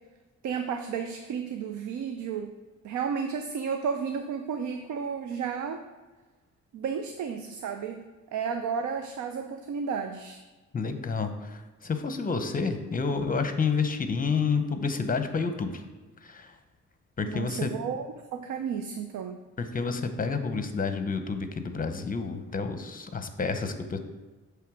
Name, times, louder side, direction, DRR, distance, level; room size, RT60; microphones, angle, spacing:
voice 1, 0.4-2.5 2.8-5.8 6.7-8.0 8.3-10.4 17.2-19.4, right 6 dB, 75° right, 6 dB, 0.6 m, -32 dB
voice 2, 10.7-15.8 16.2-16.5 17.2-17.7 19.7-24.0, left 5 dB, 30° left, 8 dB, 0.8 m, -29 dB
8.3 x 3.4 x 6.1 m, 1.2 s
cardioid pair, 100°, 30 cm